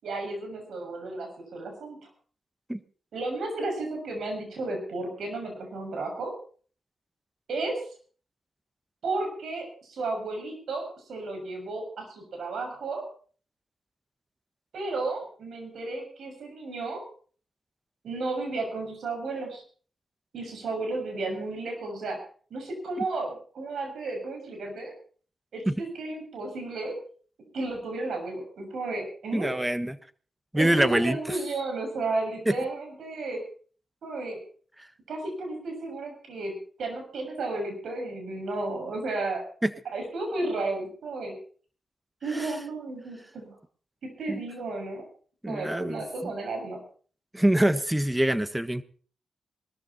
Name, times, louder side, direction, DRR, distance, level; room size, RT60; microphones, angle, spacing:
voice 1, 0.0-2.1 3.1-6.3 7.5-7.8 9.0-13.0 14.7-17.0 18.0-19.6 20.3-22.2 22.5-24.9 25.5-26.9 27.5-29.5 30.5-33.4 34.0-34.4 35.1-36.5 36.8-39.4 39.8-41.4 42.2-43.6 44.2-45.0 45.5-46.8, right 2 dB, 75° right, 3 dB, 6.6 m, -33 dB
voice 2, 29.3-30.0 30.5-31.4 32.5-32.6 39.6-39.7 42.3-42.5 44.3-44.4 45.4-46.0 47.3-48.8, right 1 dB, 10° right, 13 dB, 1.4 m, -24 dB
20.0 x 13.5 x 4.3 m, 0.44 s
supercardioid pair, 45°, 0 cm